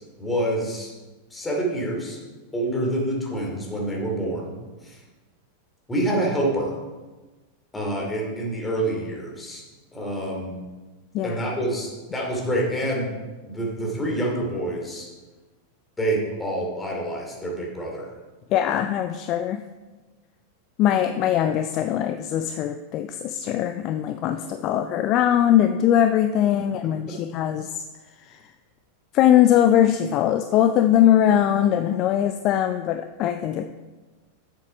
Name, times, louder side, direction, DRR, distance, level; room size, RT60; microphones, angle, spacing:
voice 1, 0.2-0.9 1.3-2.2 2.5-4.5 4.8-5.0 5.9-6.7 7.7-9.6 9.9-10.5 11.2-13.1 13.5-15.1 16.0-18.1, right 1 dB, 10° left, -2 dB, 2.7 m, -27 dB
voice 2, 18.5-19.6 20.8-27.8 28.2-28.5 29.1-33.7, left 11 dB, 40° left, 8 dB, 0.4 m, -21 dB
7.5 x 7.5 x 5.0 m, 1.2 s
figure-of-eight pair, 90°, 0 cm